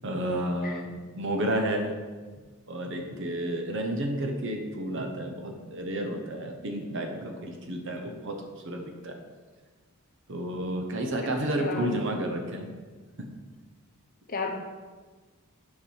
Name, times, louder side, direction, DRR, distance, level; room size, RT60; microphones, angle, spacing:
voice 1, 0.0-2.0 2.7-8.4 8.6-9.2 10.3-12.7 13.2-13.3, right 1 dB, 60° right, 3 dB, 1.1 m, -31 dB
voice 2, 0.6-0.7 11.2-11.3 11.6-11.9 14.3-14.5, left 4 dB, 40° left, 3 dB, 0.9 m, -33 dB
7.2 x 4.9 x 5.6 m, 1.4 s
head